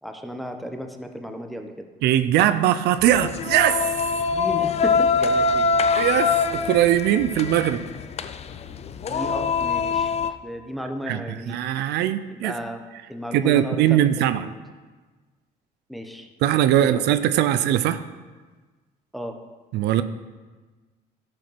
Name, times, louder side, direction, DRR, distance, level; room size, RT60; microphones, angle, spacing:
voice 1, 0.0-1.9 4.3-5.7 9.0-10.2 10.4-11.6 12.3-12.8 13.1-14.6 15.9-16.3 16.8-17.1 19.1-19.4, equal, ahead, 5 dB, 1.1 m, -34 dB
voice 2, 2.0-3.9 6.0-7.8 11.1-12.5 13.3-14.5 16.4-18.0 19.7-20.0, right 12 dB, 80° right, 12 dB, 0.6 m, -21 dB
sound 1, 3.0-10.3, left 5 dB, 40° left, 0.6 m, -24 dB
12.5 x 6.5 x 5.9 m, 1.3 s
cardioid pair, 110°, 17 cm